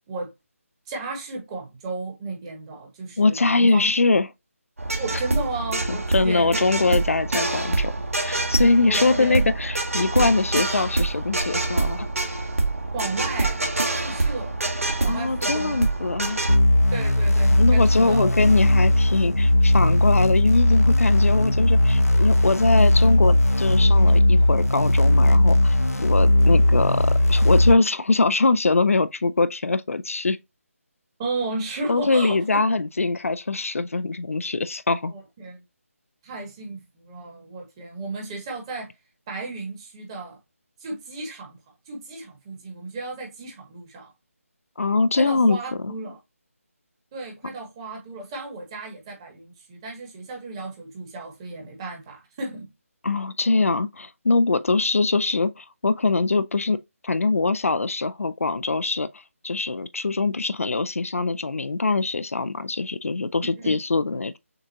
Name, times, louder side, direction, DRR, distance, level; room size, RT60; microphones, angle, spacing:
voice 1, 0.9-3.9 5.0-6.6 8.8-9.5 12.9-13.6 14.0-14.6 15.0-15.8 16.9-18.3 31.2-32.4 35.1-35.6 36.2-38.9 39.3-40.4 40.8-41.6 41.9-44.1 45.1-46.2 47.1-52.7 63.5-63.8, right 3 dB, 20° right, 1.2 m, -34 dB
voice 2, 3.2-4.3 5.9-7.9 8.2-12.1 15.1-16.4 17.6-30.4 31.9-35.1 44.8-45.6 45.8-45.9 53.0-64.4, left 3 dB, 65° left, 0.4 m, -23 dB
sound 1, 4.8-16.6, right 2 dB, 70° right, 1.4 m, -26 dB
sound 2, 16.5-27.7, left 1 dB, 85° left, 0.8 m, -18 dB
6.5 x 2.4 x 2.7 m
figure-of-eight pair, 155°, 8 cm